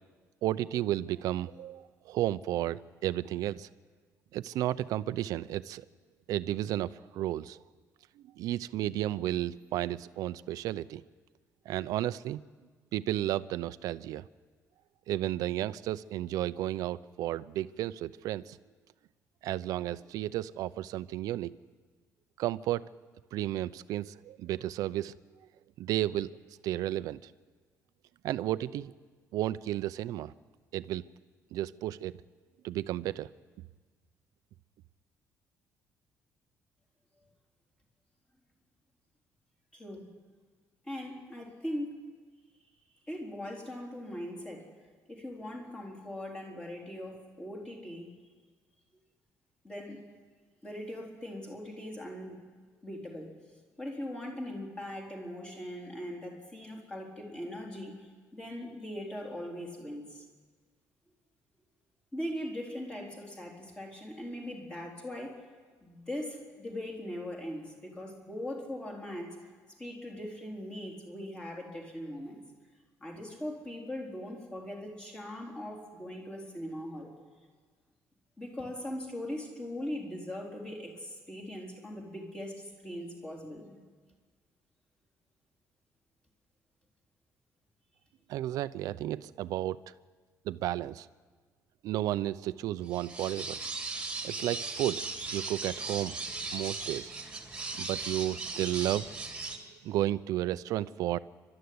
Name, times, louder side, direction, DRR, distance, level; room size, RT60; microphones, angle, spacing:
voice 1, 0.4-3.7 4.3-5.8 6.3-7.6 8.2-11.0 11.7-12.4 12.9-14.3 15.1-18.6 19.4-21.5 22.4-22.9 23.3-25.1 25.8-26.3 26.6-27.3 28.2-28.9 29.3-30.3 30.7-31.1 31.5-32.2 32.6-33.3 88.3-89.8 90.4-91.1 91.8-93.6 94.2-96.2 96.5-97.1 97.8-99.1 99.8-101.2, right 13 dB, 75° right, 15 dB, 0.6 m, -33 dB
voice 2, 39.7-40.1 40.9-42.0 43.0-44.7 45.0-48.1 49.6-50.0 50.6-52.4 52.8-53.3 53.8-57.9 58.3-60.3 62.1-65.4 65.8-69.4 69.7-72.4 73.0-77.1 78.4-83.8, left 1 dB, 15° left, 0 dB, 4.0 m, -40 dB
sound 1, 92.9-99.6, right 3 dB, 15° right, 2.4 m, -38 dB
29.0 x 13.0 x 9.6 m, 1.5 s
cardioid pair, 170°, 6 cm